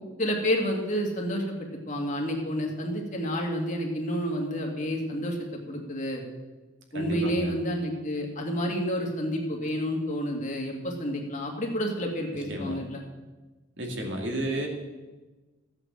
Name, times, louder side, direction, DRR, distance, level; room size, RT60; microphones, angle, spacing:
voice 1, 0.2-1.5 1.9-6.2 6.9-13.0, equal, 40° left, 1 dB, 2.2 m, -29 dB
voice 2, 6.9-7.5 12.5-12.8 13.8-14.7, right 1 dB, 65° right, 1 dB, 2.6 m, -32 dB
14.5 x 8.2 x 7.5 m, 1.2 s
head